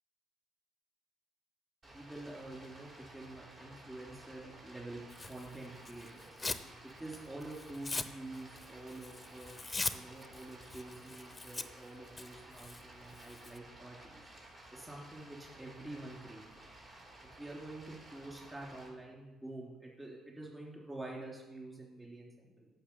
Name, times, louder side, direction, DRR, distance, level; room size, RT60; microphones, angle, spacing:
voice 1, 1.8-5.0 5.3-6.4 6.8-9.5 9.9-14.3 14.7-16.4 17.2-22.7, right 2 dB, 15° right, -3 dB, 3.0 m, -47 dB
Stream, 1.8-18.9, right 1 dB, 45° right, 3.6 m, -55 dB
Tearing, 5.1-6.7 7.1-13.6, left 3 dB, 20° left, 0.7 m, -42 dB
8.5 x 6.0 x 6.9 m, 1.1 s
hypercardioid pair, 50°, 0 cm